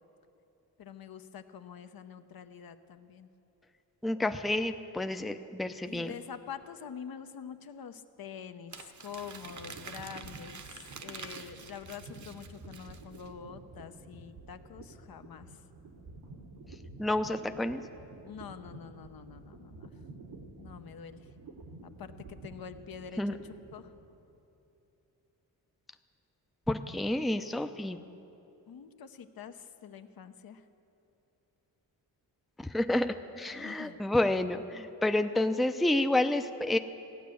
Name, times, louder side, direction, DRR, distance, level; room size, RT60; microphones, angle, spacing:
voice 1, 0.8-3.3 5.8-15.6 18.2-19.9 20.6-21.3 21.8-23.9 28.7-30.6 33.5-34.0, left 7 dB, 65° left, 9 dB, 0.8 m, -46 dB
voice 2, 4.0-6.1 17.0-17.8 23.2-23.4 26.7-28.0 32.6-36.8, left 1 dB, ahead, 8 dB, 0.5 m, -29 dB
Crumpling crinkling, 8.7-13.3, right 5 dB, 45° right, 1.0 m, -47 dB
sound 1, 8.8-24.2, right 3 dB, 75° right, 1.6 m, -50 dB
16.0 x 9.3 x 7.0 m, 2.9 s
cardioid pair, 65°, 39 cm